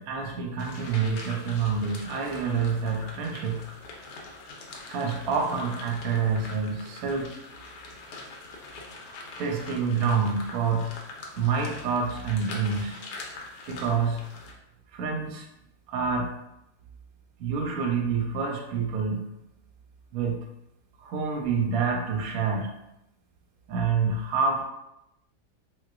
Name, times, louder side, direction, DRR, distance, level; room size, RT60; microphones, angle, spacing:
voice 1, 0.0-3.6 4.9-7.3 9.4-10.9 11.4-13.0 13.7-14.2 14.9-15.5 15.9-16.3 17.4-19.3 20.1-20.4 21.0-22.8 23.7-24.6, right 5 dB, 70° right, 1 dB, 0.9 m, -27 dB
sound 1, 0.6-14.5, left 3 dB, 80° left, 1.2 m, -43 dB
4.0 x 2.3 x 2.4 m, 0.86 s
omnidirectional pair, 1.8 m